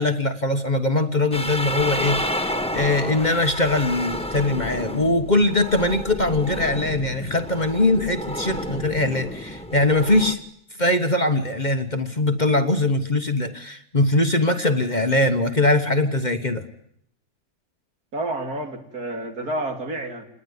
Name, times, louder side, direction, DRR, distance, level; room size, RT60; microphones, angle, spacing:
voice 1, 0.0-2.2 2.5-10.4 10.8-16.7, left 2 dB, 30° left, 7 dB, 1.3 m, -21 dB
sound 1, 1.3-10.3, left 1 dB, 5° left, 1.1 m, -30 dB
voice 2, 18.1-20.3, right 1 dB, 75° right, 4 dB, 3.5 m, -29 dB
27.5 x 20.0 x 9.7 m, 0.70 s
omnidirectional pair, 1.6 m